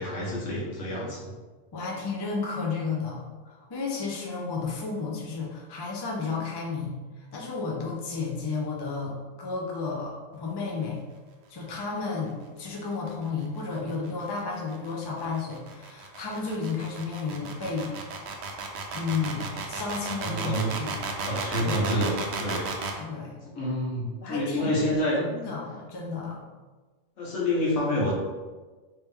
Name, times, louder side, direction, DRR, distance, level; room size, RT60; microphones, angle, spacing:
voice 1, 0.0-1.3 20.2-20.7 21.2-22.7 23.5-25.5 27.2-28.1, left 1 dB, 90° left, -5 dB, 1.5 m, -28 dB
voice 2, 1.7-11.0 11.5-17.9 18.9-21.0 21.6-21.8 23.0-23.4 24.2-24.8 25.3-26.4, left 4 dB, 30° left, -2 dB, 0.4 m, -32 dB
sound 1, 13.7-23.0, right 4 dB, 70° right, 0.8 m, -34 dB
3.1 x 3.1 x 3.4 m, 1.3 s
omnidirectional pair, 1.3 m